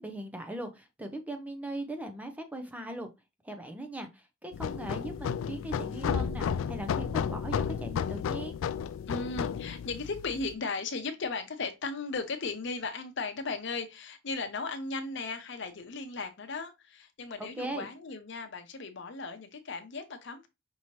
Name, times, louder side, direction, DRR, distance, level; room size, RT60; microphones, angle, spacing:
voice 1, 0.0-3.1 3.4-8.6 17.4-17.9, right 1 dB, 10° right, 0.5 m, -39 dB
sound 1, 4.5-10.5, left 7 dB, 80° left, 0.3 m, -32 dB
voice 2, 9.1-20.5, left 3 dB, 60° left, 0.8 m, -36 dB
5.5 x 2.9 x 3.0 m
head